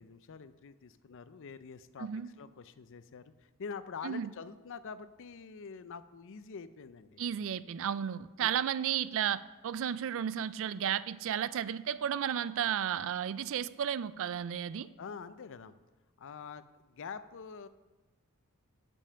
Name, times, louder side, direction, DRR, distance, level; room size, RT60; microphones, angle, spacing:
voice 1, 0.0-2.1 2.4-7.2 8.4-8.6 14.8-15.7 16.2-17.7, left 5 dB, 60° left, 13 dB, 0.5 m, -46 dB
voice 2, 7.2-14.9, right 9 dB, 60° right, 16 dB, 0.3 m, -33 dB
12.5 x 5.4 x 5.6 m, 1.2 s
head